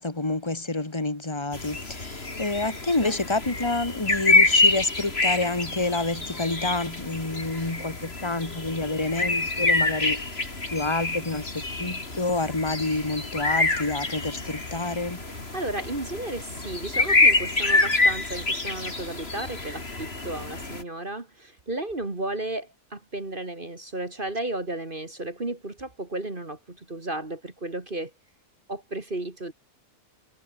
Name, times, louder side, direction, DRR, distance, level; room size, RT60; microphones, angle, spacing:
voice 1, 0.0-10.2 10.7-15.2, left 2 dB, 15° left, 2.4 m, -28 dB
sound 1, 1.5-20.8, left 2 dB, 40° left, 3.7 m, -26 dB
voice 2, 15.3-28.1 28.7-29.5, right 2 dB, 35° right, 2.8 m, -34 dB
omnidirectional pair, 1.6 m